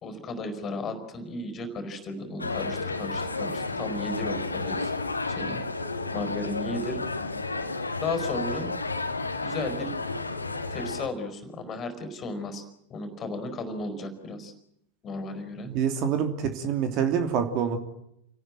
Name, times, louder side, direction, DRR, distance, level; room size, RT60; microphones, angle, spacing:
voice 1, 0.0-4.9 5.3-5.6 6.1-7.0 8.0-8.7 9.4-9.9 10.7-12.6 12.9-14.5 15.0-15.7, left 2 dB, 25° left, 9 dB, 4.8 m, -34 dB
sound 1, 2.4-11.1, left 3 dB, 80° left, 2.1 m, -31 dB
voice 2, 15.7-17.8, right 7 dB, 40° right, 7 dB, 3.1 m, -26 dB
29.5 x 18.5 x 9.0 m, 0.77 s
figure-of-eight pair, 90°, 0 cm